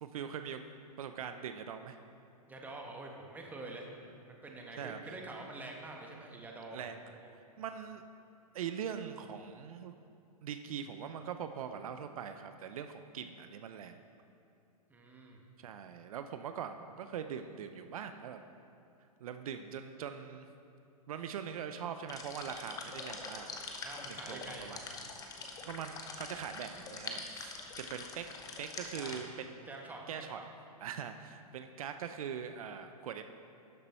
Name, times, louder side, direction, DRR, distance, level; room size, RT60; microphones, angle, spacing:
voice 1, 0.0-0.6 1.0-2.0 4.8-5.2 6.7-7.1 7.6-8.0 8.5-10.0 10.4-14.0 15.6-18.4 19.2-20.5 21.1-23.6 24.0-24.8 25.6-28.3 28.6-29.7 30.1-30.4 30.8-33.2, right 8 dB, 65° right, 8 dB, 0.6 m, -42 dB
voice 2, 2.5-7.3 14.9-15.4 23.8-24.8 29.0-29.2 29.6-30.4, right 2 dB, 10° right, 0 dB, 1.2 m, -47 dB
sound 1, 22.1-29.2, left 4 dB, 20° left, 1.0 m, -44 dB
12.0 x 6.7 x 4.4 m, 2.7 s
hypercardioid pair, 130°, 20 cm